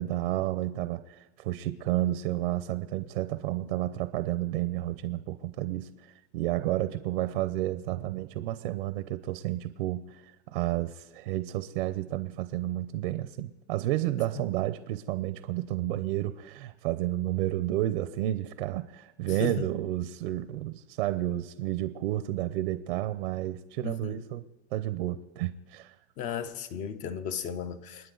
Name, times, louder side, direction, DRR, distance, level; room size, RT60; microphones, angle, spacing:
voice 1, 0.0-24.4 24.7-26.0, right 14 dB, 70° right, 0.8 m, -31 dB
voice 2, 19.3-19.7 23.8-24.2 26.2-28.1, left 7 dB, 25° left, 0.6 m, -35 dB
29.0 x 9.8 x 3.9 m
supercardioid pair, 175°, 31 cm